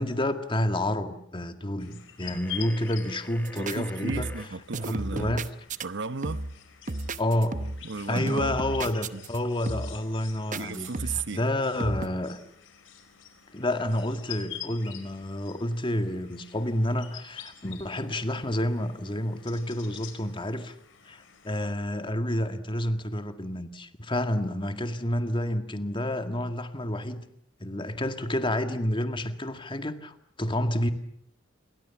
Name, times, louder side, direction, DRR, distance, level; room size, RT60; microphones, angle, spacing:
voice 1, 0.0-4.3 4.9-5.4 7.2-7.6 8.1-10.9 11.3-12.4 13.5-20.8 21.1-27.2 27.6-30.9, left 1 dB, 25° left, 1.9 m, -29 dB
sound 1, 1.8-21.7, left 10 dB, 70° left, 4.7 m, -47 dB
sound 2, 2.2-4.5, left 2 dB, 10° left, 1.7 m, -46 dB
sound 3, 3.5-3.8 4.1-4.5 4.7-5.9 6.2-6.6 6.9-7.9 8.2-9.4 9.7-10.0 10.5-11.3 11.8-12.1, right 2 dB, 40° right, 0.9 m, -33 dB
voice 2, 3.6-5.3 5.8-6.4 7.8-8.6 9.1-9.2 10.5-11.4, right 4 dB, 65° right, 1.0 m, -35 dB
28.5 x 23.0 x 7.2 m
head